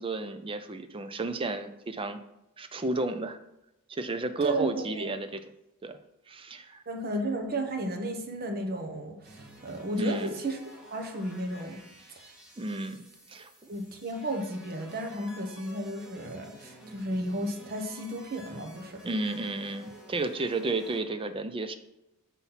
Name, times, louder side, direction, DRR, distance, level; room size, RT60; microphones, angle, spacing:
voice 1, 0.0-2.2 2.6-3.4 3.9-5.4 5.8-6.0 6.3-6.8 10.0-10.3 12.6-13.0 13.3-13.5 19.0-21.8, right 2 dB, 25° right, 9 dB, 0.5 m, -32 dB
voice 2, 4.4-5.1 6.9-10.6 10.9-11.8 13.7-19.0, right 1 dB, 45° right, 4 dB, 1.0 m, -33 dB
sound 1, 9.2-21.0, equal, 5° right, 1.6 m, -51 dB
5.7 x 4.2 x 5.6 m, 0.87 s
head